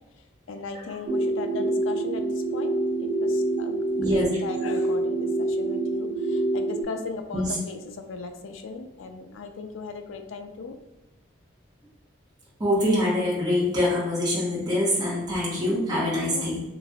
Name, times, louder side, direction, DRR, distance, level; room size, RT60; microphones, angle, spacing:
voice 1, 0.5-10.8 16.3-16.5, left 4 dB, 85° left, 6 dB, 0.4 m, -38 dB
sound 1, 1.1-6.8, right 2 dB, 75° right, 0.9 m, -26 dB
voice 2, 12.6-16.6, left 1 dB, 20° right, -7 dB, 1.0 m, -24 dB
3.8 x 2.6 x 2.3 m, 1.0 s
head